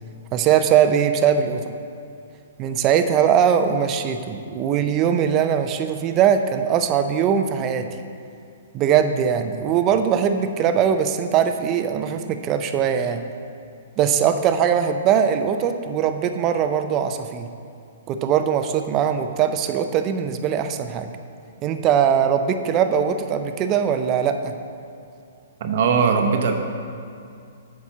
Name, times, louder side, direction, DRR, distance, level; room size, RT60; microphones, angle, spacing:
voice 1, 0.3-1.7 2.6-7.9 8.7-13.2 14.0-17.5 18.1-21.1 21.6-24.5, right 8 dB, 30° right, 8 dB, 0.5 m, -21 dB
voice 2, 25.6-26.5, right 5 dB, 55° right, 4 dB, 0.9 m, -19 dB
8.3 x 4.3 x 6.0 m, 2.5 s
hypercardioid pair, 140°, 0 cm